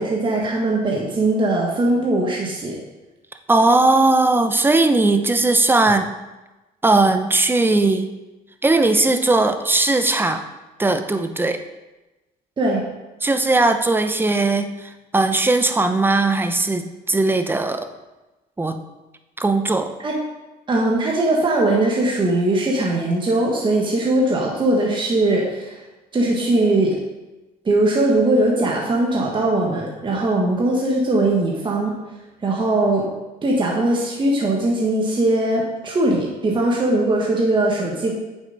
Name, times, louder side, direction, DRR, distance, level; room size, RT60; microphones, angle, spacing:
voice 1, 0.0-2.8 12.6-12.8 20.0-20.2 20.7-25.8 26.1-27.0 27.6-31.9 32.4-33.1 33.4-38.1, right 2 dB, 30° right, -2 dB, 1.5 m, -20 dB
voice 2, 3.5-6.1 6.8-8.1 8.6-10.4 10.8-11.6 13.2-17.9 18.6-18.8 19.4-19.9, right 2 dB, 10° right, 8 dB, 0.7 m, -18 dB
9.3 x 7.2 x 4.0 m, 1.1 s
cardioid pair, 110°, 17 cm